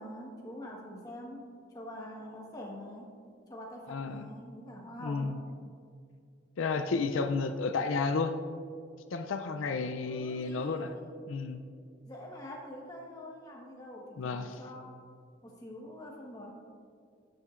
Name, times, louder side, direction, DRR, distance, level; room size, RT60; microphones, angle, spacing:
voice 1, 0.0-3.1 3.5-5.5 10.0-11.2 12.1-14.9 15.4-16.5, left 1 dB, 20° left, -2 dB, 1.3 m, -45 dB
voice 2, 3.9-4.3 5.0-5.4 6.6-8.3 9.1-10.9 11.3-11.6 14.2-14.5, left 4 dB, 85° left, 8 dB, 0.4 m, -32 dB
12.0 x 9.3 x 2.5 m, 2.4 s
head